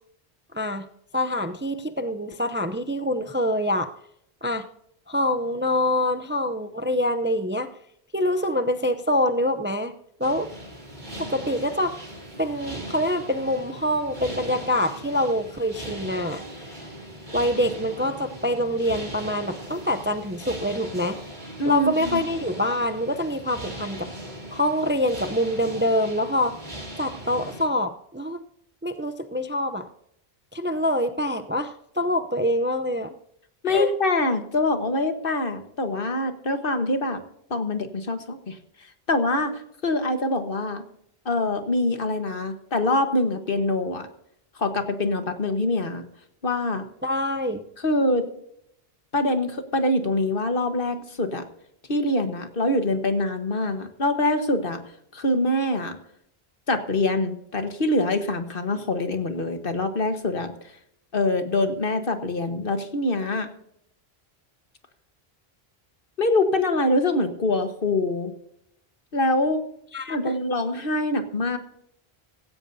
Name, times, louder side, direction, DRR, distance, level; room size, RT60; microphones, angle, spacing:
voice 1, 0.5-0.9 1.1-3.9 4.4-4.7 5.1-7.7 8.1-9.9 10.2-10.5 11.2-12.0 12.4-16.4 17.3-21.2 21.6-24.1 24.5-26.5 27.0-28.4 28.8-29.9 30.5-33.1 33.7-33.9 47.0-47.6 69.9-70.4, left 1 dB, 15° right, 9 dB, 0.5 m, -25 dB
sound 1, 10.2-27.7, right 1 dB, 50° right, 3.4 m, -39 dB
voice 2, 21.6-22.2 33.6-37.2 37.5-38.6 39.1-40.8 41.2-44.1 44.6-46.0 46.4-46.9 47.8-48.3 49.1-51.4 51.9-54.8 55.1-56.0 56.7-60.5 61.1-63.5 66.2-68.3 69.1-69.6 70.1-71.6, left 2 dB, 60° left, 8 dB, 1.6 m, -24 dB
16.5 x 16.0 x 2.7 m, 0.73 s
omnidirectional pair, 1.1 m